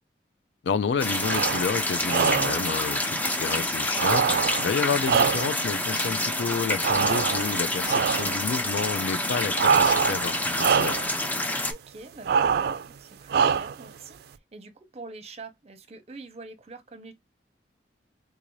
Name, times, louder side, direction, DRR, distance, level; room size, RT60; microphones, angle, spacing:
voice 1, 0.6-11.0, left 6 dB, 75° left, 0.4 m, -30 dB
sound 1, 1.0-11.7, left 1 dB, 10° left, 0.5 m, -28 dB
sound 2, 1.2-1.7 2.1-2.7 3.9-5.7 6.8-7.6 7.9-8.4 9.5-10.3 10.5-11.1 12.2-12.9 13.3-13.9, right 6 dB, 60° right, 0.3 m, -24 dB
voice 2, 3.1-3.6 8.0-8.3 11.7-17.1, right 3 dB, 35° right, 0.8 m, -45 dB
3.7 x 2.6 x 3.0 m
head